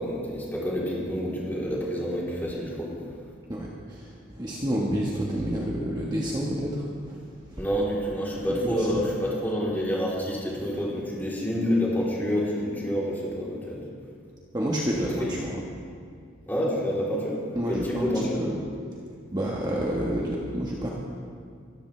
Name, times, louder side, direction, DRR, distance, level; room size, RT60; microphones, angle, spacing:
voice 1, 0.0-2.9 7.6-13.8 15.0-15.3 16.4-17.4 17.7-18.3, equal, 10° left, -6 dB, 3.5 m, -28 dB
voice 2, 3.5-7.2 7.5-7.6 8.5-9.0 14.5-15.6 17.5-18.1 18.4-18.6 19.3-20.9, equal, 20° right, -4 dB, 1.4 m, -29 dB
24.0 x 14.0 x 3.3 m, 2.2 s
head